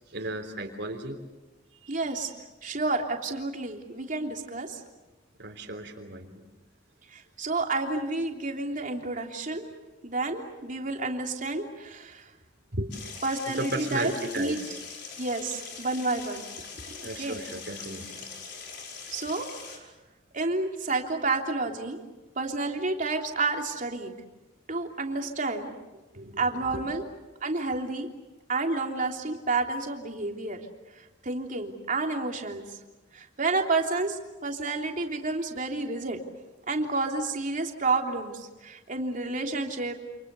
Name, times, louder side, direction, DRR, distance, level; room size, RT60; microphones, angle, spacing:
voice 1, 0.1-1.2 1.8-2.2 5.4-6.4 12.7-13.0 13.5-14.8 17.0-18.3 26.1-26.4 26.7-26.8, right 2 dB, 60° right, 3 dB, 3.4 m, -35 dB
voice 2, 1.9-2.3 2.6-4.8 7.1-9.7 10.0-12.3 13.2-14.6 15.2-16.4 16.9-17.4 19.1-19.5 20.3-22.0 22.3-24.1 24.7-25.7 26.4-27.0 27.4-28.1 28.5-30.6 31.2-32.6 33.1-36.2 36.7-39.9, right 3 dB, 45° right, 2 dB, 3.3 m, -30 dB
sound 1, 12.9-19.8, left 5 dB, 65° left, 5.3 m, -42 dB
29.0 x 28.0 x 7.0 m, 1.1 s
head